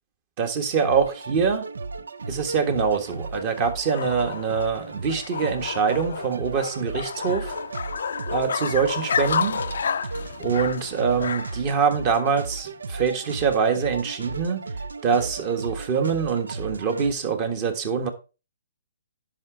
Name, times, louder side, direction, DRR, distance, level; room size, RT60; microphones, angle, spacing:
voice 1, 0.4-1.6 2.3-7.6 8.3-9.6 10.4-14.6 15.0-18.1, right 6 dB, 35° right, 1.5 m, -24 dB
sound 1, 0.8-17.1, right 3 dB, 90° right, 0.5 m, -35 dB
sound 2, 2.3-11.7, left 7 dB, 70° left, 0.4 m, -31 dB
11.0 x 5.1 x 3.8 m
hypercardioid pair, 150°, 0 cm